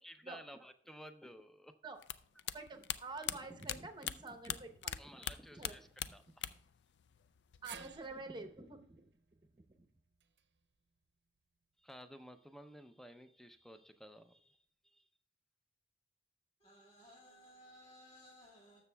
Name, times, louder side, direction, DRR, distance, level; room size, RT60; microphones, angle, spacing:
voice 1, 0.0-1.7 5.0-6.5 11.8-14.6 14.9-15.0, equal, ahead, 0.4 m, -54 dB
sound 1, 2.0-5.0 5.2-6.8 7.0-7.8, left 11 dB, 70° left, 0.4 m, -40 dB
voice 2, 2.5-5.1 5.5-5.7 6.1-6.2 7.6-9.1 9.4-9.9, right 3 dB, 25° right, 0.8 m, -48 dB
sound 2, 7.6-11.9 12.3-12.4 13.5-13.6, right 7 dB, 65° right, 0.6 m, -57 dB
voice 3, 16.6-18.8, equal, 30° left, 1.9 m, -59 dB
19.0 x 6.9 x 2.2 m
head